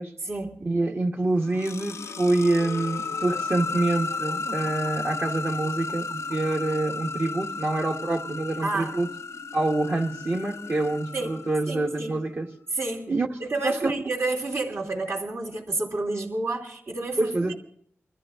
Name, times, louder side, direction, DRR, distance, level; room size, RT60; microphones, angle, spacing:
voice 1, 0.6-9.1 9.5-12.5 13.1-13.3 13.6-13.9 17.2-17.5, right 2 dB, 55° right, 1.6 m, -26 dB
sound 1, 1.2-12.0, left 4 dB, 85° left, 0.6 m, -34 dB
voice 2, 8.6-9.0 11.1-11.4 11.7-12.2 12.7-13.0 13.4-17.3, right 2 dB, 75° right, 3.2 m, -29 dB
24.0 x 14.0 x 3.8 m
wide cardioid pair, 95°, 5 cm